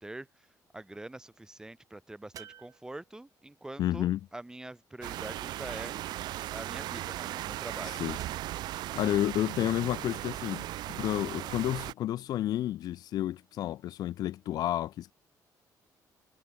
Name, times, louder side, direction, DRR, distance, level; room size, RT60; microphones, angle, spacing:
voice 1, 0.7-6.0 6.5-8.0, right 2 dB, 10° right, 1.5 m, -44 dB
sound 1, 2.3-3.4 5.9-6.7 8.1-8.8 11.0-11.7, right 10 dB, 55° right, 2.1 m, -52 dB
voice 2, 3.8-4.2 7.8-8.2 8.9-15.1, left 13 dB, 65° left, 0.4 m, -31 dB
sound 2, 5.0-11.9, right 15 dB, 80° right, 0.8 m, -37 dB
cardioid pair, 135°, 7 cm